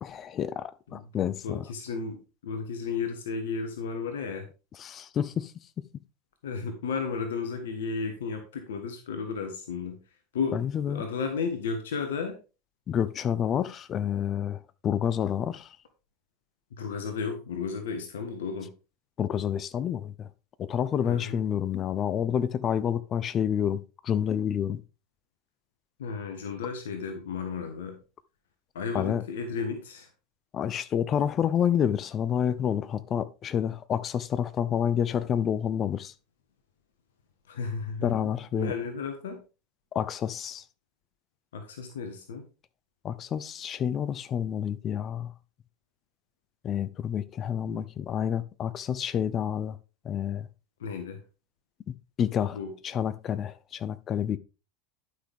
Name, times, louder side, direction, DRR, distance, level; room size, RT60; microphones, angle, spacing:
voice 1, 0.0-1.6 4.8-5.5 10.5-11.0 12.9-15.7 19.2-20.3 20.6-24.8 28.9-29.2 30.5-36.1 38.0-38.7 39.9-40.6 43.0-45.3 46.6-49.8 50.0-50.5 51.9-52.6 52.8-54.4, left 9 dB, 35° left, 0.7 m, -29 dB
voice 2, 1.4-4.5 6.4-10.0 10.3-10.6 10.9-12.4 16.7-18.7 21.0-21.4 26.0-28.0 28.7-30.1 37.5-39.4 41.5-42.4 47.7-47.8 50.8-51.2 52.5-52.7, left 5 dB, 70° left, 1.5 m, -33 dB
11.5 x 6.1 x 3.6 m
figure-of-eight pair, 85°, 0 cm